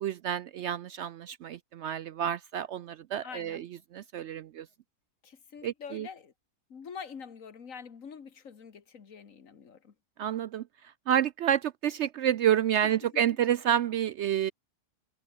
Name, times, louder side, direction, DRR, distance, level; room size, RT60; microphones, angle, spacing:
voice 1, 0.0-3.7 3.9-4.7 5.6-6.1 10.2-14.5, right 10 dB, 75° right, 0.6 m, -29 dB
voice 2, 3.2-3.6 5.2-6.3 6.7-9.9 12.8-12.9, left 6 dB, 55° left, 2.0 m, -45 dB
omnidirectional pair, 1.7 m